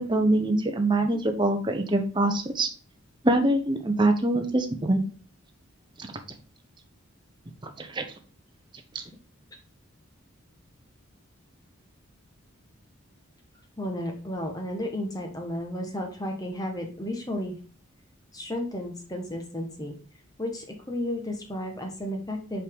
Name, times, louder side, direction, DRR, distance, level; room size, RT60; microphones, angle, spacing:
voice 1, 0.0-2.7 3.2-5.0 7.8-8.0 8.9-9.0, right 2 dB, 20° right, 5 dB, 0.9 m, -24 dB
voice 2, 13.8-17.5 18.3-19.9 20.4-22.6, left 1 dB, 20° left, 3 dB, 1.2 m, -33 dB
5.4 x 5.0 x 3.6 m, 0.39 s
head